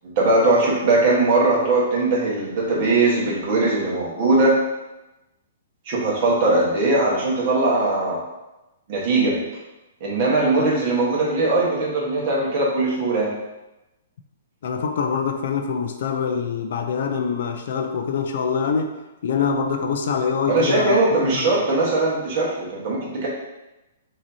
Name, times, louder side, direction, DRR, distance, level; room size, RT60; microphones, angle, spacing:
voice 1, 0.2-4.6 5.9-8.2 8.9-9.4 10.0-13.3 20.5-23.3, right 2 dB, 35° right, -5 dB, 1.3 m, -20 dB
voice 2, 14.6-18.9 19.2-21.0 21.3-21.5, left 6 dB, 60° left, 5 dB, 0.5 m, -24 dB
6.0 x 2.8 x 2.8 m, 1.0 s
hypercardioid pair, 165°, 0 cm